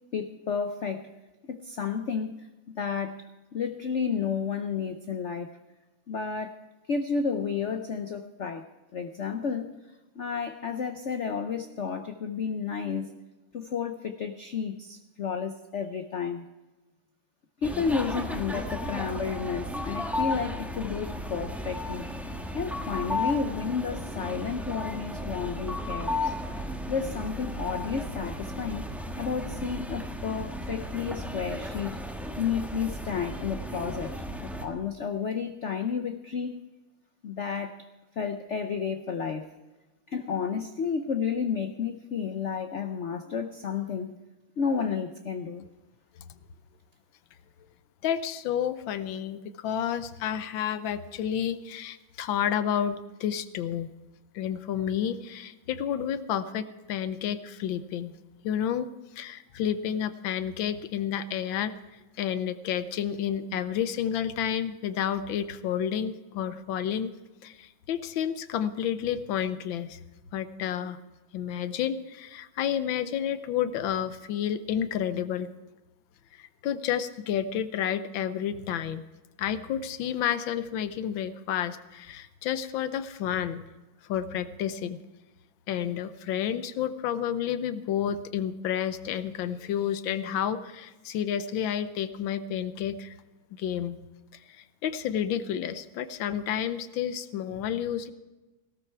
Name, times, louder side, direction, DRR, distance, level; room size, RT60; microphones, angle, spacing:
voice 1, 0.1-1.1 1.4-2.3 2.7-5.6 6.1-6.6 6.9-8.7 8.9-9.7 10.2-13.1 13.5-16.4 17.6-22.1 22.5-26.3 26.6-28.9 29.1-32.1 32.4-36.6 37.2-37.9 38.2-39.5 40.1-44.1 44.6-45.6, left 6 dB, 60° left, 7 dB, 0.8 m, -31 dB
sound 1, 17.6-34.7, left 1 dB, ahead, 1.2 m, -34 dB
voice 2, 48.0-53.9 54.3-58.1 58.4-58.9 59.1-61.7 62.2-67.1 67.4-70.0 70.3-71.0 71.3-75.5 76.3-79.0 79.4-83.6 84.1-85.0 85.7-93.2 93.6-94.0 94.5-98.1, left 9 dB, 85° left, 12 dB, 1.6 m, -30 dB
18.0 x 13.0 x 4.6 m, 1.1 s
omnidirectional pair, 2.1 m